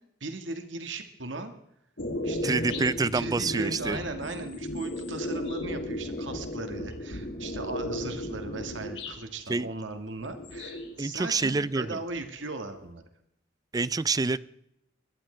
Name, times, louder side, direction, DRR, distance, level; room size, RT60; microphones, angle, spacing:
voice 1, 0.2-1.5 2.2-2.8 3.1-13.0, right 2 dB, 80° right, 7 dB, 1.6 m, -38 dB
sound 1, 2.0-9.2 10.2-11.5 11.8-12.8, left 1 dB, 70° left, 2.6 m, -35 dB
voice 2, 2.4-4.0 9.5-9.7 11.0-12.0 13.7-14.4, right 3 dB, 20° right, 18 dB, 0.4 m, -27 dB
21.0 x 12.5 x 3.3 m, 0.76 s
head